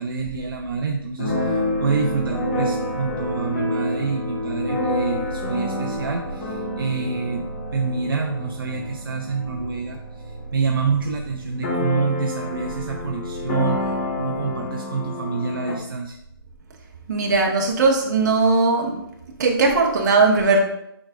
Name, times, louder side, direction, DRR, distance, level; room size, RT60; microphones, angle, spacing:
voice 1, 0.0-7.5 7.7-10.0 10.2-16.2, right 5 dB, 65° right, 2 dB, 0.7 m, -27 dB
sound 1, 1.2-14.7, right 3 dB, 70° left, 2.3 m, -37 dB
Keyboard (musical), 1.2-10.7 11.0-11.1 11.3-15.7, left 2 dB, 35° left, 1.4 m, -28 dB
voice 2, 17.1-19.0 19.4-20.6, right 3 dB, 45° right, 0 dB, 1.5 m, -18 dB
8.6 x 5.2 x 2.5 m, 0.80 s
hypercardioid pair, 155°, 13 cm